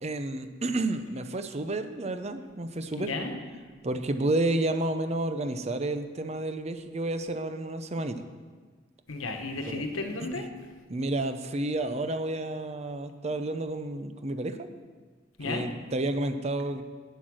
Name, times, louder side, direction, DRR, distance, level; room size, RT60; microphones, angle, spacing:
voice 1, 0.0-3.1 3.8-8.2 9.7-9.8 10.3-10.4 10.9-14.7 15.4-16.8, right 2 dB, 35° right, 9 dB, 0.6 m, -30 dB
voice 2, 3.0-3.3 9.1-10.5 15.4-15.6, left 3 dB, 90° left, 5 dB, 1.2 m, -33 dB
9.1 x 8.4 x 6.2 m, 1.4 s
head